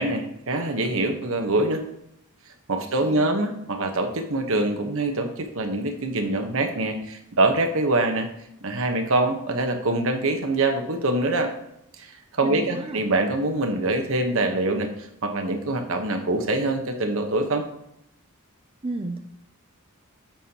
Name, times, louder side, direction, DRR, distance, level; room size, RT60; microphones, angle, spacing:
voice 1, 0.0-1.8 2.7-8.3 8.6-11.5 12.0-17.6, right 2 dB, 65° right, 5 dB, 1.1 m, -24 dB
voice 2, 2.8-3.4 12.4-13.0 18.8-19.2, right 2 dB, 25° right, 4 dB, 0.5 m, -33 dB
9.0 x 6.4 x 2.9 m, 0.78 s
head